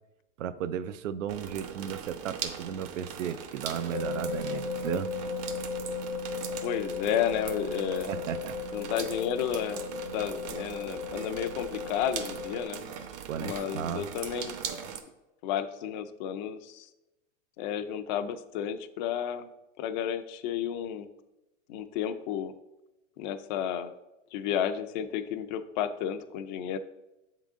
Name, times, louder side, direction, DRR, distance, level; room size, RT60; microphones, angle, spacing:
voice 1, 0.4-5.1 8.1-8.6 13.3-14.1, right 9 dB, 85° right, 14 dB, 0.5 m, -34 dB
sound 1, 1.3-15.0, right 7 dB, 50° right, 0.8 m, -40 dB
sound 2, 3.9-12.6, left 4 dB, 65° left, 1.0 m, -36 dB
voice 2, 6.6-8.1 8.7-9.8 10.1-12.8 13.4-14.6 15.4-16.9 17.6-19.5 19.8-21.1 21.7-22.5 23.2-23.9 24.3-26.8, left 9 dB, 40° left, 9 dB, 0.4 m, -32 dB
7.2 x 3.8 x 3.6 m, 0.96 s
hypercardioid pair, 135°, 37 cm